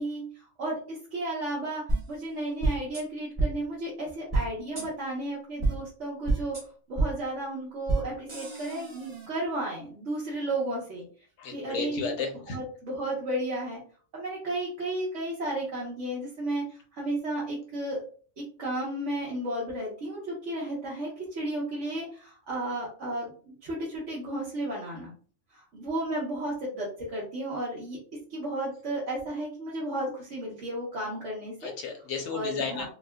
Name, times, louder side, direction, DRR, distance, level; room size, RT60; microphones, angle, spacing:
voice 1, 0.0-6.6 6.9-11.1 11.5-12.1 12.5-13.8 14.1-18.0 18.4-25.1 25.5-28.0 28.3-31.7 32.3-32.8, right 1 dB, 70° right, -6 dB, 1.3 m, -33 dB
sound 1, 1.9-2.0 2.6-3.0 3.4-3.5 4.3-4.4 4.8-4.9 5.6-5.7 6.3-6.6 7.0-7.1 7.9-8.0 8.3-9.3, right 2 dB, 30° right, 0.8 m, -27 dB
voice 2, 11.4-12.6 31.6-32.8, left 5 dB, 65° left, 4 dB, 1.1 m, -33 dB
4.7 x 2.2 x 2.2 m, 0.43 s
omnidirectional pair, 1.3 m